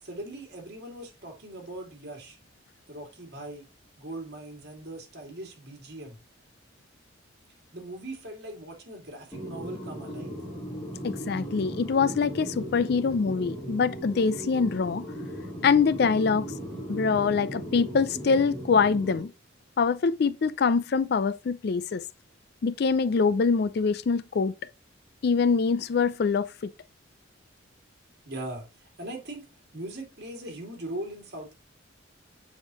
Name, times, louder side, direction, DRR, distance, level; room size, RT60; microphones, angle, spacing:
voice 1, 0.0-2.4 2.9-3.7 4.0-6.2 7.7-10.4 28.2-29.5 29.7-31.5, right 1 dB, 55° right, 2.4 m, -40 dB
sound 1, 9.3-19.2, equal, 15° left, 2.8 m, -37 dB
voice 2, 11.0-15.1 15.6-16.5 16.9-19.3 19.8-22.0 22.6-24.5 25.2-26.7, left 5 dB, 55° left, 0.4 m, -24 dB
7.3 x 5.1 x 3.0 m
head